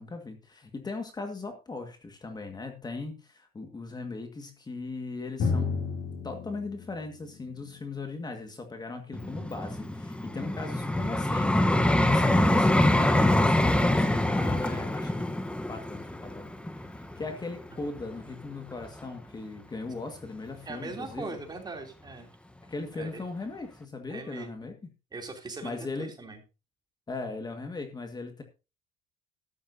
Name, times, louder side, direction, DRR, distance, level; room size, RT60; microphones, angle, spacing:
voice 1, 0.0-5.9 6.2-11.8 12.0-13.1 13.4-15.3 15.7-16.5 16.8-21.4 22.6-24.8 25.6-26.2 27.1-28.4, left 3 dB, 25° left, 6 dB, 1.8 m, -38 dB
Drum, 5.4-8.9, left 4 dB, 65° left, 2.9 m, -33 dB
Vehicle, 9.1-18.2 18.8-19.0, left 1 dB, 5° left, 1.1 m, -25 dB
voice 2, 20.6-22.3 23.0-23.2 24.1-24.5 25.1-26.4, right 3 dB, 25° right, 3 dB, 3.1 m, -40 dB
13.0 x 12.0 x 2.8 m, 0.29 s
cardioid pair, 110°, 17 cm